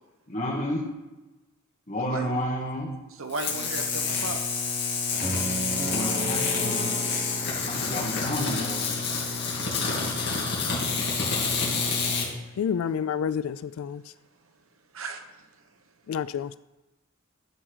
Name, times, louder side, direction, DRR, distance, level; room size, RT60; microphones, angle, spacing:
voice 1, 0.3-0.9 1.9-2.9 5.2-6.9 7.7-8.9, equal, 35° left, -2 dB, 2.2 m, -31 dB
voice 2, 2.0-2.4 3.1-4.4 10.9-11.5 14.9-15.3, right 3 dB, 75° right, 6 dB, 1.0 m, -36 dB
sound 1, 3.3-12.3, left 4 dB, 50° left, 2.5 m, -28 dB
sound 2, 5.2-9.4, right 2 dB, 20° right, 1.6 m, -35 dB
voice 3, 12.6-14.0 16.1-16.6, left 7 dB, 80° left, 16 dB, 0.3 m, -29 dB
11.0 x 4.8 x 6.3 m, 1.1 s
head